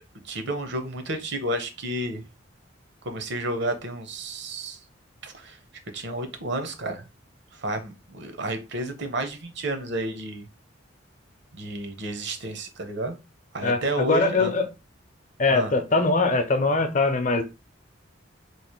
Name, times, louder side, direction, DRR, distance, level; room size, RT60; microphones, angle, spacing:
voice 1, 0.2-2.2 3.0-4.8 5.2-5.6 5.9-7.1 7.5-10.5 11.5-13.2 13.5-14.5 15.5-15.7, right 1 dB, 65° right, 0.9 m, -31 dB
voice 2, 13.6-14.7 15.4-17.4, left 3 dB, 40° left, 0.6 m, -22 dB
3.2 x 2.5 x 4.4 m
head